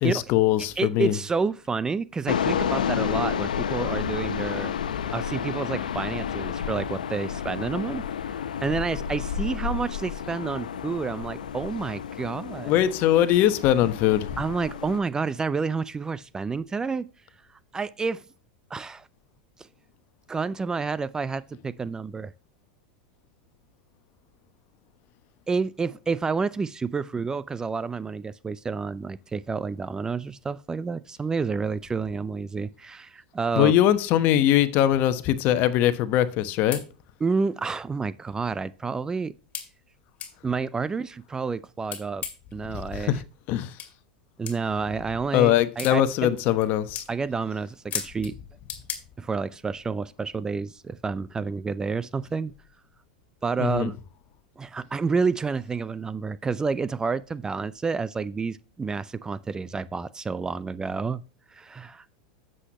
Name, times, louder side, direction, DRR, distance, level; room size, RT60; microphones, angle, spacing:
voice 1, 0.0-1.1 12.6-14.3 33.6-36.8 42.9-43.2 43.5-43.7 45.3-47.0 53.6-53.9, left 12 dB, 50° left, 1.1 m, -21 dB
voice 2, 0.8-4.7 5.1-12.8 14.4-17.1 17.7-18.2 18.7-19.1 20.3-22.3 25.5-33.7 37.2-39.3 40.4-42.2 42.5-43.2 44.4-46.4 47.1-48.3 49.2-52.5 53.4-54.0 54.6-61.2 61.5-62.1, right 4 dB, 15° right, 0.5 m, -29 dB
sound 1, 2.3-15.0, left 8 dB, 90° left, 0.9 m, -30 dB
sound 2, 36.4-36.5 36.7-36.9 37.7-37.8 38.3-38.4 39.5-39.7 40.2-40.3 41.8-42.5 43.8-43.9 44.4-44.6 45.8-46.0 46.5-46.7 46.9-47.1 47.9-48.3 48.7-49.0, left 8 dB, 35° left, 2.3 m, -34 dB
9.8 x 7.8 x 3.0 m
hypercardioid pair, 105°, 4 cm